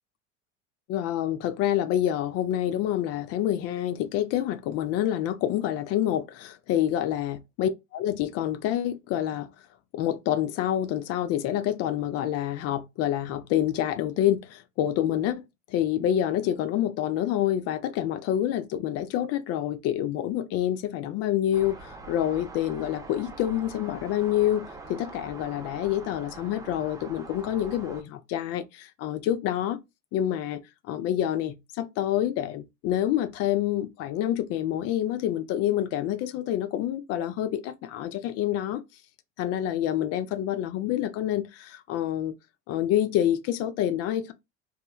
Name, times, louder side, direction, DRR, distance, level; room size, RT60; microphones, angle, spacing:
voice 1, 0.9-9.5 9.9-29.8 30.1-38.8 39.4-42.3 42.7-44.3, left 11 dB, 45° left, 0.4 m, -27 dB
sound 1, 21.5-28.0, right 3 dB, 10° right, 0.6 m, -44 dB
3.1 x 2.2 x 2.2 m
hypercardioid pair, 90°, 35 cm